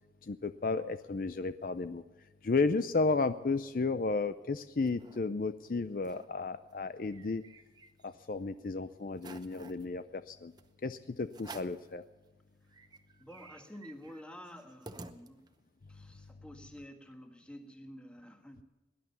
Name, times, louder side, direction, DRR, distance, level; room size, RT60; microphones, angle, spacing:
voice 1, 0.2-2.0 2.4-7.4 8.0-10.5 10.8-12.0, left 3 dB, 50° left, 12 dB, 0.5 m, -33 dB
sound 1, 4.4-5.2 5.6-5.7 6.0-6.3 6.7-8.3 8.7-8.8 9.1-9.9 10.6-10.7 11.3-11.9 12.4-12.5 12.7-15.7, right 3 dB, 25° right, 0.8 m, -51 dB
voice 2, 13.2-15.4 15.9-18.6, equal, 5° left, 5 dB, 1.5 m, -50 dB
19.0 x 11.0 x 6.8 m, 1.2 s
head